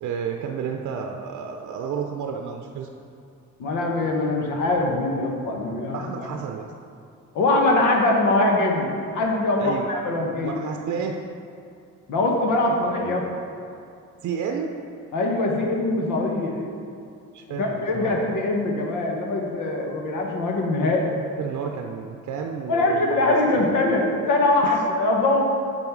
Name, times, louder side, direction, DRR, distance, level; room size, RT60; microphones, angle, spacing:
voice 1, 0.0-2.9 5.9-6.7 9.6-9.9 10.4-11.2 14.2-14.7 17.3-18.1 21.4-23.7 24.6-24.8, right 6 dB, 70° right, 3 dB, 0.6 m, -31 dB
voice 2, 3.6-6.1 7.3-10.6 12.1-13.2 15.1-16.6 17.5-21.1 22.7-25.4, left 2 dB, 85° left, 0 dB, 1.2 m, -22 dB
7.4 x 5.4 x 4.6 m, 2.4 s
cardioid pair, 90°, 30 cm